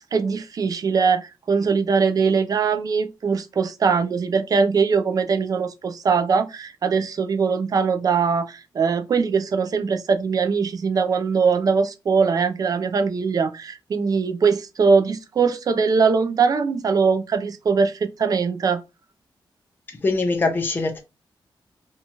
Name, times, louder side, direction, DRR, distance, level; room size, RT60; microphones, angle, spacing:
voice 1, 0.1-18.8, right 5 dB, 45° right, 0.4 m, -21 dB
voice 2, 20.0-21.0, left 3 dB, 25° left, 0.5 m, -22 dB
2.8 x 2.3 x 2.7 m
wide cardioid pair, 150°, 9 cm